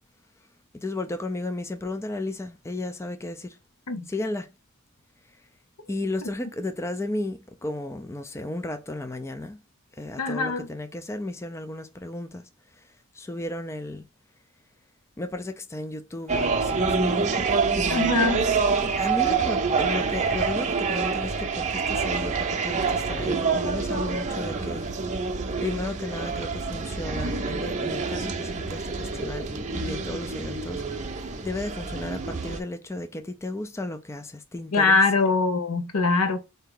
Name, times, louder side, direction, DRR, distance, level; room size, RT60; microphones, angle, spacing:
voice 1, 0.7-3.6 4.1-4.5 5.9-9.6 9.9-14.0 15.2-18.3 18.8-25.3 25.6-30.8 31.4-35.0, left 2 dB, 10° left, 0.4 m, -34 dB
voice 2, 10.2-10.7 17.9-18.5 34.7-36.4, left 3 dB, 75° left, 0.9 m, -23 dB
sound 1, 16.3-32.6, right 4 dB, 35° right, 0.6 m, -27 dB
4.5 x 2.8 x 3.7 m
head